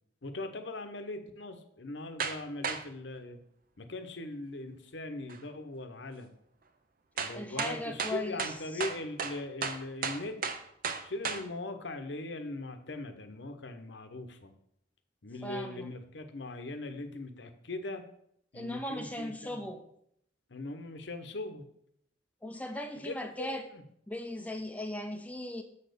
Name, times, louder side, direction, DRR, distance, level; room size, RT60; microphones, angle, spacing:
voice 1, 0.2-3.4 3.8-6.3 7.1-10.4 11.0-14.5 15.2-18.0 18.5-19.7 20.5-21.7 23.0-23.8, left 2 dB, 65° left, 7 dB, 0.9 m, -40 dB
sound 1, 2.2-2.4 2.6-2.8 5.3-5.4 7.2-11.4, right 5 dB, 50° right, 0.7 m, -34 dB
voice 2, 7.3-8.5 15.4-15.9 18.5-19.8 22.4-23.6 24.1-25.6, left 1 dB, 10° left, 6 dB, 0.6 m, -38 dB
7.1 x 4.3 x 6.8 m, 0.71 s
head